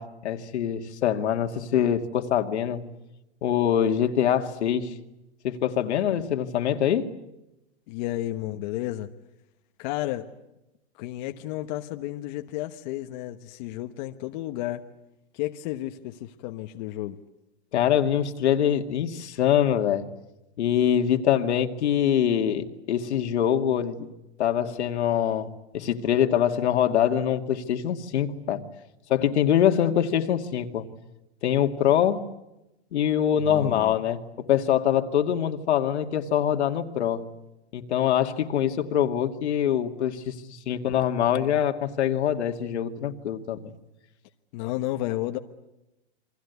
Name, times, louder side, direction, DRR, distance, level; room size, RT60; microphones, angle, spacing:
voice 1, 0.0-2.8 3.4-4.9 5.4-7.1 17.7-20.1 20.6-24.1 24.4-28.7 29.1-30.9 31.4-32.2 32.9-34.2 34.5-37.2 37.7-43.7, left 9 dB, 80° left, 2.3 m, -24 dB
voice 2, 7.9-9.1 9.8-10.3 11.0-14.8 15.3-17.2 33.4-33.9 44.5-45.4, left 15 dB, 40° left, 1.2 m, -32 dB
29.5 x 23.5 x 8.3 m
supercardioid pair, 155°, 33 cm